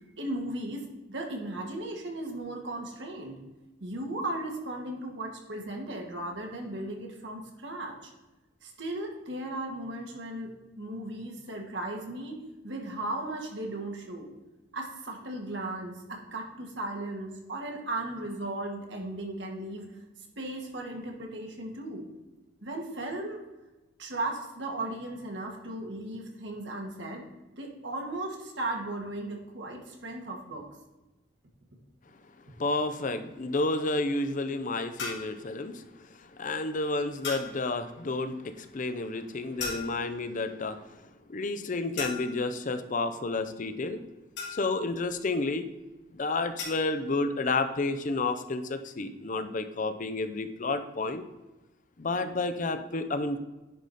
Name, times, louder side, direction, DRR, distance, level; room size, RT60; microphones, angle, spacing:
voice 1, 0.2-3.4 3.8-8.1 8.6-14.3 14.7-20.0 20.4-22.0 22.6-23.4 24.0-27.3 27.5-30.6, right 1 dB, 70° right, 1 dB, 1.8 m, -36 dB
voice 2, 32.6-35.8 36.4-41.0 41.3-44.0 44.6-45.7 46.1-51.2 52.0-53.4, left 3 dB, 45° left, 9 dB, 0.6 m, -30 dB
sound 1, 35.0-35.4 37.2-37.6 39.6-40.2 42.0-42.5 44.4-44.9 46.6-46.9, left 4 dB, 65° left, 2.9 m, -37 dB
10.0 x 4.9 x 4.2 m, 1.1 s
head